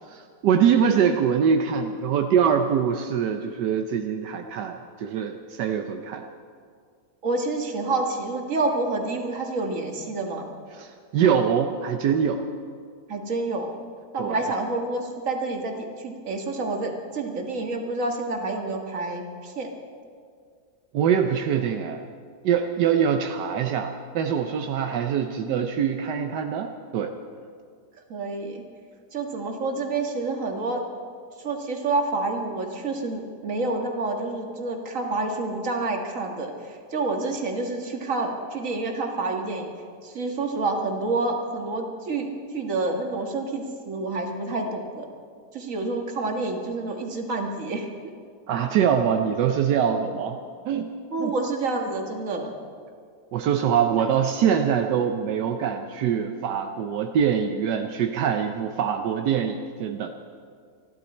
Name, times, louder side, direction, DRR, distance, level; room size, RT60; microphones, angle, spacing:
voice 1, 0.1-6.2 10.8-12.5 14.2-14.4 20.9-22.0 22.4-27.2 48.5-50.4 50.7-51.4 53.3-60.1, right 8 dB, 80° right, 5 dB, 1.3 m, -24 dB
voice 2, 7.2-10.5 13.1-13.7 14.1-19.7 28.1-28.6 29.1-30.8 31.4-39.7 40.0-45.1 45.5-47.9 50.1-50.3 51.1-52.5, right 3 dB, 50° right, 3 dB, 2.0 m, -28 dB
27.5 x 11.5 x 4.3 m, 2.1 s
omnidirectional pair, 1.8 m